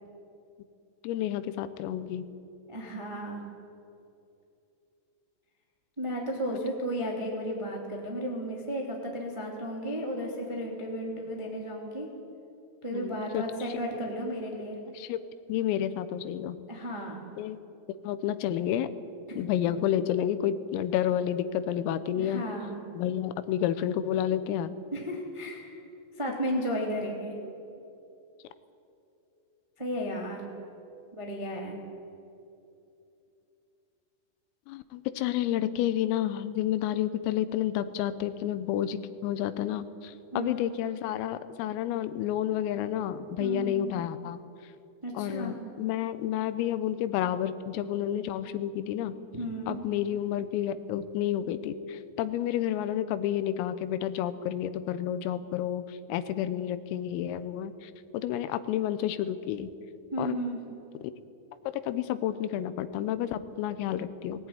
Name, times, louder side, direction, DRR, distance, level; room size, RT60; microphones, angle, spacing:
voice 1, 1.0-2.3 12.9-13.4 14.9-15.2 15.5-16.6 17.4-17.6 18.0-18.9 19.3-22.5 22.9-24.7 34.7-44.4 45.1-49.2 49.7-59.7 60.2-60.4 61.8-64.5, left 11 dB, 85° left, 13 dB, 3.5 m, -30 dB
voice 2, 2.7-3.5 6.0-12.1 12.8-14.8 16.7-17.2 19.3-19.5 22.1-22.8 24.9-25.8 26.2-27.4 29.8-30.5 31.1-31.8 40.3-40.7 43.4-43.9 45.0-45.6 49.3-49.8 60.1-60.6, equal, 15° right, -1 dB, 0.9 m, -34 dB
19.5 x 16.5 x 9.6 m, 2.8 s
omnidirectional pair, 6.0 m